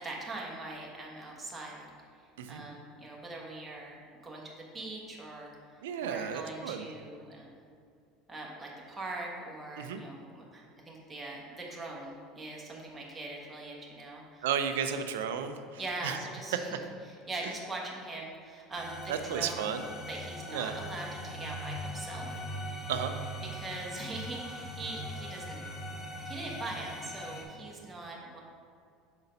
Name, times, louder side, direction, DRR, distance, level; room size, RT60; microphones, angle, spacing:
voice 1, 0.0-1.9 2.5-5.5 6.0-7.6 8.3-14.4 15.8-16.8 17.1-19.7 20.1-22.4 23.5-25.6 26.2-28.4, right 2 dB, 15° right, -3 dB, 1.3 m, -41 dB
voice 2, 5.8-6.9 9.8-10.0 14.4-16.2 16.5-16.6 19.1-19.8 20.5-20.7 22.9-23.1, right 8 dB, 80° right, 8 dB, 0.4 m, -33 dB
sound 1, 18.7-27.4, equal, 35° left, 1.3 m, -41 dB
5.1 x 3.9 x 5.3 m, 2.3 s
hypercardioid pair, 85°, 0 cm